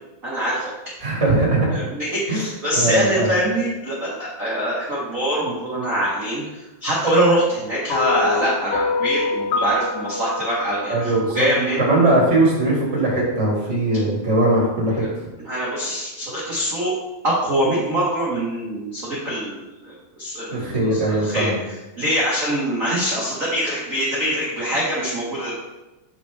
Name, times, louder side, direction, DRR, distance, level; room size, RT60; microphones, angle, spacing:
voice 1, 0.2-0.6 1.7-11.8 15.0-15.1 15.5-16.9 17.2-21.5 22.0-25.5, right 1 dB, 65° right, -7 dB, 0.8 m, -23 dB
voice 2, 1.0-1.8 2.3-2.5 2.7-3.3 10.9-11.5 11.8-15.0 20.5-21.5, right 2 dB, 20° right, -4 dB, 2.1 m, -20 dB
sound 1, 7.9-12.2, left 4 dB, 75° left, 2.2 m, -26 dB
8.3 x 6.0 x 3.4 m, 1.0 s
omnidirectional pair, 4.1 m